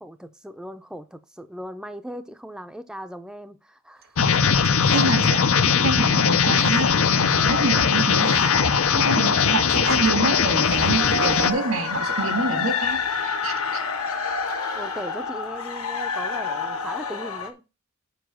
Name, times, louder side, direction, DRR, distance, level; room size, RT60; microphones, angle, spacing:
voice 1, 0.0-4.2 14.7-17.6, equal, 5° right, 0.5 m, -38 dB
sound 1, 4.0-4.1 4.3-4.4 4.6-5.3 5.6-5.7 6.0-6.1 6.5-7.0 7.3-7.4 7.7-7.8 7.9-8.6 8.9-9.0 9.2-9.5 9.8-10.2 10.8-11.1, right 7 dB, 45° right, 0.8 m, -35 dB
sound 2, 4.2-11.5, left 6 dB, 70° left, 0.6 m, -20 dB
voice 2, 4.9-5.5 5.8-8.4 8.7-13.8, right 3 dB, 80° right, 1.8 m, -27 dB
sound 3, 6.4-17.5, left 4 dB, 90° left, 1.5 m, -29 dB
7.0 x 5.0 x 6.1 m
head